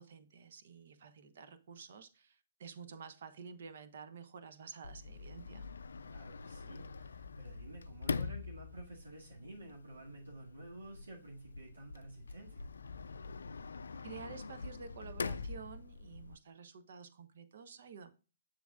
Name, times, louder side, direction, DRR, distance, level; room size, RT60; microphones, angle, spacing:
voice 1, 0.0-5.6 14.0-18.1, right 6 dB, 55° right, 9 dB, 1.0 m, -51 dB
Sliding door, 4.8-16.4, left 4 dB, 70° left, 0.3 m, -44 dB
voice 2, 6.0-12.7, right 2 dB, 75° right, -2 dB, 2.1 m, -51 dB
7.5 x 7.0 x 2.4 m, 0.32 s
figure-of-eight pair, 125°, 0 cm